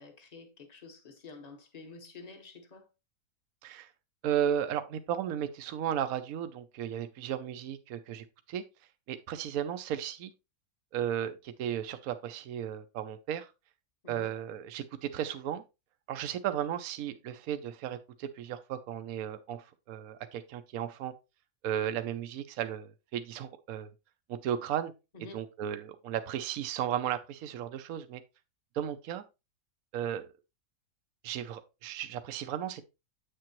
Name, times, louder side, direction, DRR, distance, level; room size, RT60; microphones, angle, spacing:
voice 1, 0.0-2.9 14.0-14.3 25.1-25.4, left 3 dB, 25° left, 1.4 m, -49 dB
voice 2, 4.2-8.6 9.1-10.3 10.9-13.5 14.1-15.6 16.1-21.1 21.6-23.9 24.3-24.9 25.3-28.2 28.7-29.2 29.9-30.3 31.2-32.8, right 10 dB, 70° right, 1.0 m, -35 dB
8.4 x 6.7 x 3.0 m
omnidirectional pair, 1.6 m